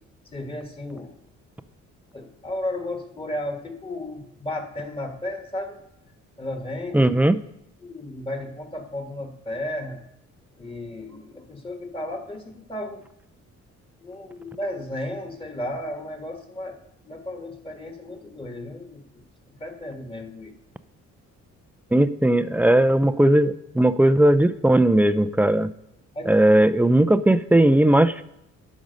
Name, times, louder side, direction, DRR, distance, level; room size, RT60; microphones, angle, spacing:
voice 1, 0.3-1.1 2.1-5.8 6.4-7.1 7.8-10.0 10.6-13.1 14.0-16.8 17.1-19.0 19.5-20.5 26.2-26.3, left 1 dB, 15° left, 4 dB, 1.6 m, -34 dB
voice 2, 6.9-7.4 21.9-25.7 26.3-28.2, right 1 dB, 5° right, 13 dB, 0.4 m, -18 dB
11.5 x 6.2 x 5.3 m, 0.83 s
cardioid pair, 90°, 30 cm